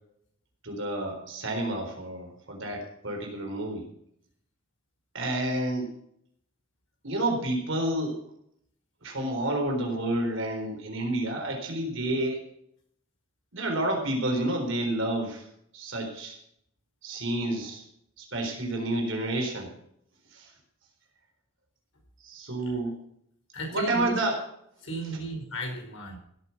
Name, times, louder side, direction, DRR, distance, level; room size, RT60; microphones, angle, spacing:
voice 1, 0.6-3.8 5.1-5.9 7.0-8.2 9.0-12.4 13.5-15.5 15.7-16.4 17.0-17.8 18.2-19.7 20.3-20.5 22.2-23.0 23.7-24.4, right 1 dB, 65° right, 2 dB, 4.1 m, -29 dB
voice 2, 23.5-24.2 24.8-26.2, right 1 dB, 65° left, 1 dB, 5.1 m, -34 dB
16.5 x 9.0 x 6.0 m, 0.71 s
head